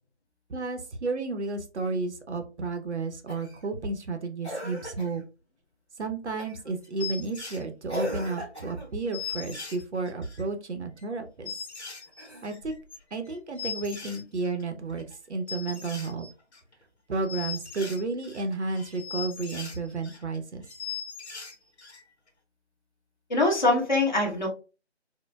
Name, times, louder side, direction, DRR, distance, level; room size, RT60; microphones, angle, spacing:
voice 1, 0.5-5.2 6.0-11.5 12.4-12.7 13.1-16.3 17.1-20.6, right 3 dB, 75° right, 6 dB, 0.8 m, -32 dB
Cough, 3.3-3.7 4.4-5.2 6.4-6.7 7.9-9.0 12.1-12.8 14.3-14.4, left 1 dB, 5° right, 1.1 m, -37 dB
sound 1, 6.4-6.5 6.8-7.6 8.2-8.3 8.5-8.6 8.8-8.9 9.1-10.5 11.0-11.1 11.4-14.6 14.9-15.1 15.5-16.8 17.1-20.4 20.6-22.0 22.3-22.4, left 6 dB, 70° left, 1.0 m, -39 dB
voice 2, 23.3-24.5, left 2 dB, 40° left, -2 dB, 1.1 m, -23 dB
4.4 x 2.2 x 2.2 m, 0.32 s
figure-of-eight pair, 170°, 34 cm